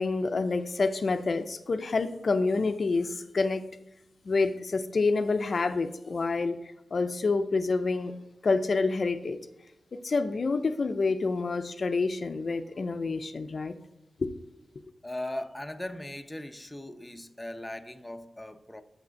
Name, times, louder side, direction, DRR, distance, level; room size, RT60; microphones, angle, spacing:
voice 1, 0.0-3.7 4.3-6.6 6.9-8.1 8.4-9.4 9.9-13.8 14.2-14.3, left 3 dB, 50° left, 0.5 m, -28 dB
voice 2, 15.0-18.8, left 1 dB, 10° left, 0.7 m, -38 dB
6.6 x 5.9 x 6.3 m
cardioid pair, 70°, 0 cm